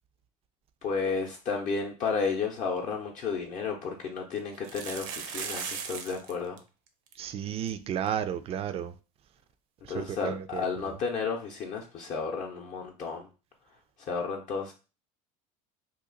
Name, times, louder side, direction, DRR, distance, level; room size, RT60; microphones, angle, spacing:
voice 1, 0.8-6.6 9.9-13.3 14.0-14.7, left 5 dB, 45° left, 0.6 m, -32 dB
sound 1, 2.9-3.0 3.3-3.4 4.5-6.3 6.6-6.7 6.9-7.1 7.7-7.8 8.1-8.2 10.2-10.3, right 6 dB, 70° right, 0.7 m, -37 dB
voice 2, 7.2-8.9 9.9-10.8, right 9 dB, 35° right, 0.4 m, -33 dB
2.8 x 2.4 x 3.8 m
supercardioid pair, 105°, 18 cm